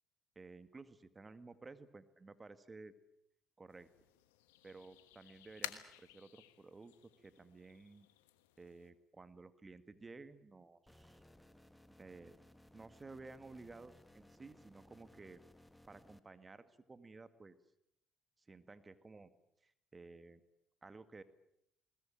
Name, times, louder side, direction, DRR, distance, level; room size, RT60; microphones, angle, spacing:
voice 1, 0.4-2.9 3.6-3.9 4.6-8.1 8.6-11.2 12.0-12.4 12.7-15.4 15.9-17.6 18.5-19.3 19.6-20.4 20.8-21.2, right 3 dB, 30° right, 11 dB, 2.0 m, -55 dB
sound 1, 3.7-8.9, left 14 dB, 90° left, 1.3 m, -53 dB
sound 2, 10.9-16.2, left 1 dB, 5° left, 1.9 m, -63 dB
21.0 x 20.5 x 8.9 m, 0.77 s
hypercardioid pair, 55°, 0 cm